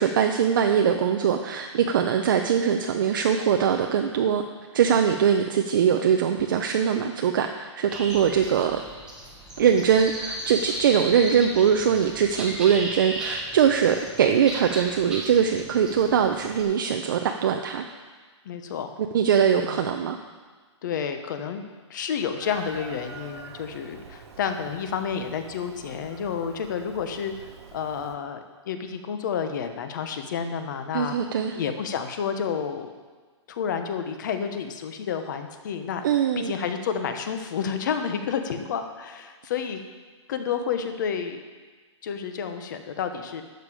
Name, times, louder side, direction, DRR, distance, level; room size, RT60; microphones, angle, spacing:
voice 1, 0.0-4.4 4.7-8.8 9.6-17.8 19.1-20.2 30.9-31.6 36.0-36.5, right 8 dB, 45° right, 4 dB, 0.6 m, -22 dB
sound 1, 7.9-16.6, right 1 dB, 5° right, 1.0 m, -36 dB
voice 2, 18.4-18.9 19.5-19.8 20.8-21.6 21.9-27.5 27.7-31.2 31.5-32.9 33.5-36.0 36.4-39.8 40.3-41.4 42.0-43.4, left 7 dB, 40° left, 7 dB, 0.9 m, -30 dB
Chicken rooster, 22.4-28.2, right 5 dB, 65° right, 1.4 m, -45 dB
12.0 x 7.2 x 4.9 m, 1.4 s
hypercardioid pair, 170°, 16 cm